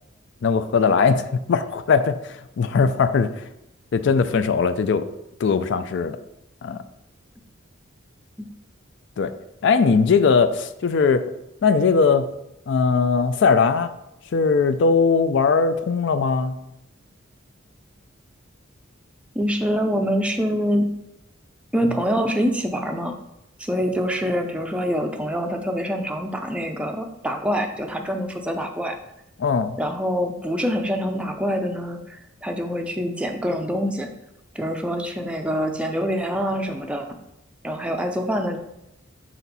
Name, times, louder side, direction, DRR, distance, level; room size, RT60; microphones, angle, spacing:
voice 1, 0.4-3.3 3.9-5.1 5.4-6.2 6.6-6.8 9.2-9.3 9.6-11.3 11.6-12.3 12.7-13.9 14.3-16.6 29.4-29.8, left 5 dB, 65° left, 11 dB, 0.4 m, -19 dB
voice 2, 19.4-20.9 21.7-23.2 23.6-29.0 29.8-34.1 34.6-37.1 37.6-38.6, equal, 5° right, 3 dB, 0.4 m, -25 dB
6.0 x 4.3 x 4.0 m, 0.85 s
head